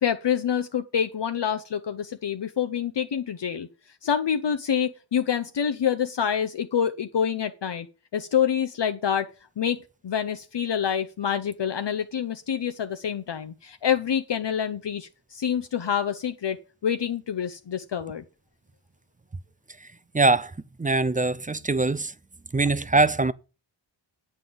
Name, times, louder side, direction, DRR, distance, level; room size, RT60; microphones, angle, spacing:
voice 1, 0.0-3.7 4.0-7.9 8.1-9.3 9.6-9.8 10.0-18.2, left 8 dB, 60° left, 0.8 m, -27 dB
voice 2, 20.1-20.5 20.8-22.1 22.5-23.3, right 3 dB, 20° right, 0.4 m, -22 dB
9.0 x 5.6 x 7.9 m
wide cardioid pair, 115°, 48 cm